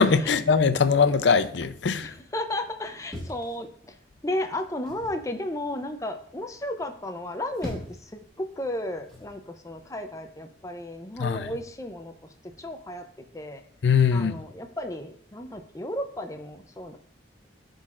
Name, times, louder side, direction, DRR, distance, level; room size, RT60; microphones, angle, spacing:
voice 1, 0.0-2.1 11.2-11.5 13.8-14.4, left 5 dB, 80° left, 0.5 m, -21 dB
voice 2, 2.0-3.9 4.2-13.0 13.3-13.6 14.1-17.0, left 1 dB, 15° left, 0.6 m, -34 dB
sound 1, 3.1-4.1 4.9-5.3 7.2-8.1 9.1-9.4, left 1 dB, ahead, 1.9 m, -39 dB
11.5 x 4.0 x 2.4 m
head